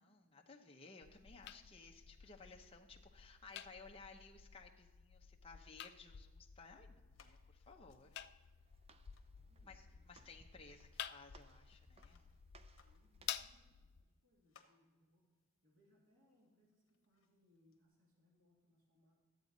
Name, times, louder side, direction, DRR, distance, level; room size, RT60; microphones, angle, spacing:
voice 1, 0.0-8.2 9.6-12.3, left 4 dB, 30° left, 1 dB, 1.0 m, -58 dB
Various Light switches, 1.0-14.0, left 10 dB, 55° left, 0.4 m, -52 dB
sound 1, 6.3-17.9, left 6 dB, 70° left, 1.2 m, -75 dB
Walk footsteps, 8.2-13.6, right 3 dB, 30° right, 0.5 m, -68 dB
voice 2, 8.8-10.7 12.8-15.3 15.6-19.1, left 1 dB, 85° right, -3 dB, 2.6 m, -75 dB
13.0 x 8.4 x 4.0 m, 1.3 s
head